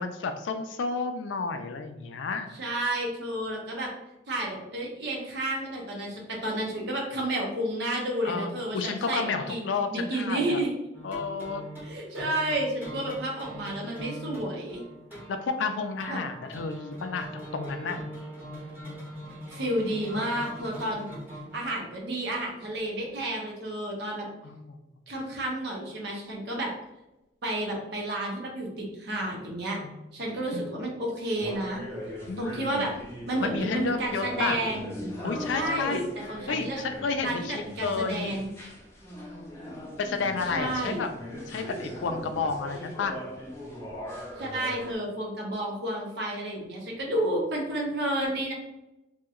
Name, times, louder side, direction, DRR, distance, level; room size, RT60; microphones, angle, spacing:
voice 1, 0.0-2.6 8.2-10.6 11.0-11.6 15.3-18.0 24.4-24.8 29.8-30.0 30.5-30.7 32.3-32.8 33.4-34.6 35.2-36.1 36.5-38.4 40.0-41.1 41.5-43.2, left 4 dB, 80° left, 7 dB, 0.4 m, -31 dB
voice 2, 2.6-3.9 4.3-9.2 9.5-9.6 9.9-10.7 11.8-14.8 16.1-16.2 19.5-21.0 21.5-24.3 25.1-26.7 27.4-29.8 30.1-31.8 32.4-32.9 33.3-34.9 35.5-36.0 36.3-36.8 37.2-38.5 40.5-41.0 44.4-48.5, right 1 dB, 65° right, -1 dB, 0.8 m, -31 dB
sound 1, 10.9-23.2, equal, 10° right, 0.9 m, -42 dB
sound 2, 31.4-44.9, left 1 dB, 15° left, 0.6 m, -40 dB
2.8 x 2.8 x 2.4 m, 0.94 s
head